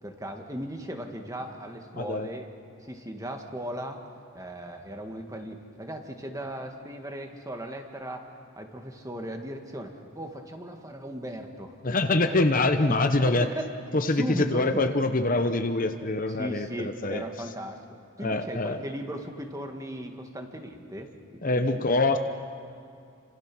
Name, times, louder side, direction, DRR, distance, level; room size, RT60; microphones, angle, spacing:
voice 1, 0.0-2.5 2.8-4.0 4.3-8.3 8.6-11.8 12.2-12.3 12.9-13.7 14.1-14.8 16.3-21.8, equal, 15° right, 4 dB, 1.9 m, -37 dB
voice 2, 1.9-2.3 11.8-13.5 13.9-17.2 18.2-18.8 21.4-22.2, left 2 dB, 40° left, 7 dB, 0.9 m, -25 dB
29.5 x 26.5 x 6.2 m, 2.5 s
head